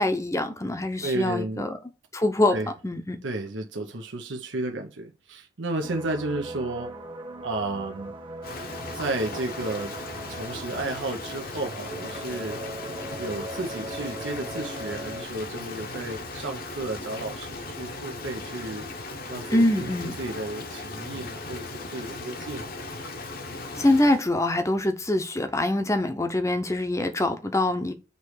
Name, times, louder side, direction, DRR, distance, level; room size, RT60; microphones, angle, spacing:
voice 1, 0.0-1.7 2.1-2.5 2.8-3.2 19.5-20.1 23.7-27.9, left 1 dB, 15° left, 0.7 m, -24 dB
voice 2, 1.0-1.7 2.5-2.7 3.2-6.9 7.4-8.1 8.9-9.9 10.3-12.6 13.2-18.9 19.3-22.7, right 2 dB, 75° right, 0.8 m, -33 dB
sound 1, 5.8-15.2, right 1 dB, 25° right, 1.1 m, -39 dB
Rain, 8.4-24.3, left 2 dB, 50° left, 0.9 m, -37 dB
6.7 x 3.2 x 4.8 m
head